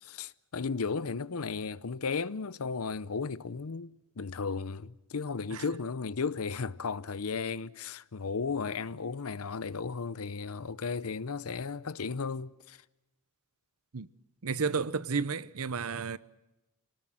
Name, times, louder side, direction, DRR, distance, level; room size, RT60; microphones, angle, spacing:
voice 1, 0.0-12.8, left 5 dB, 90° left, 0.7 m, -35 dB
voice 2, 14.4-16.2, right 5 dB, 85° right, 0.8 m, -32 dB
27.5 x 19.0 x 7.5 m
head